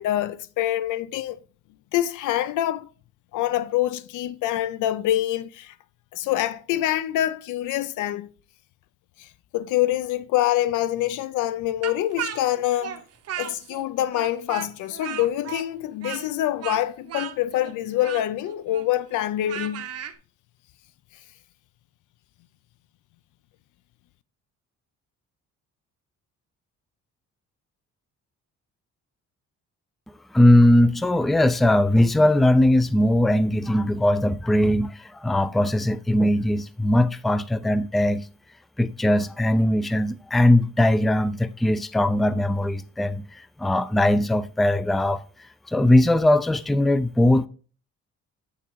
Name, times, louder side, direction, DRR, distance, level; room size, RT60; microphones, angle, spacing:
voice 1, 0.0-1.4 1.9-2.9 3.3-5.7 6.1-8.3 9.2-13.0 13.4-19.9, left 13 dB, 85° left, 0.5 m, -25 dB
Speech, 11.8-13.8 14.1-20.1, right 9 dB, 55° right, 0.8 m, -35 dB
voice 2, 30.3-38.3 38.8-45.2 45.7-47.5, left 1 dB, ahead, 0.3 m, -20 dB
8.3 x 3.7 x 4.5 m
cardioid pair, 90°, 30 cm